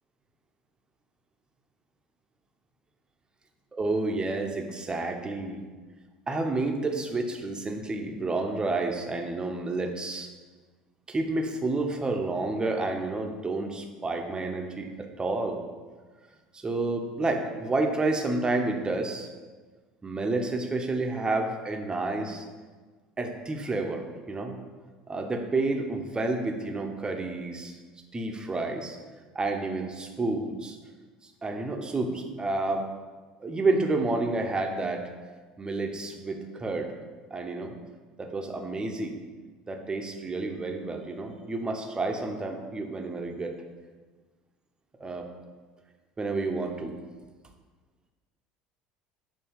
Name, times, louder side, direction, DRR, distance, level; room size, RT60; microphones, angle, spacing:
voice 1, 3.7-5.6 6.3-10.3 11.1-15.6 16.5-19.3 20.0-22.5 23.2-24.6 25.1-27.8 28.1-29.0 29.3-30.8 31.2-32.9 33.4-35.1 35.6-36.9 37.3-37.8 38.2-39.2 39.7-43.5 45.0-45.3 46.2-46.9, right 2 dB, 20° right, 3 dB, 0.9 m, -30 dB
6.8 x 2.8 x 5.4 m, 1.4 s
hypercardioid pair, 70°, 4 cm